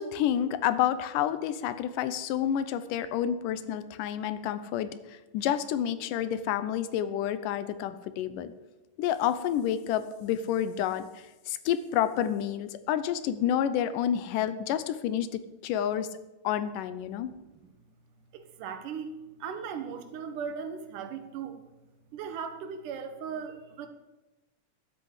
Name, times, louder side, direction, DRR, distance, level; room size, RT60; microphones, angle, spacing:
voice 1, 0.0-8.5 9.0-15.3 15.6-16.1 16.4-17.3, left 10 dB, 85° left, 13 dB, 2.4 m, -29 dB
voice 2, 18.3-21.6 22.1-23.9, right 6 dB, 80° right, 8 dB, 2.7 m, -38 dB
12.0 x 8.4 x 8.1 m, 1.1 s
omnidirectional pair, 3.6 m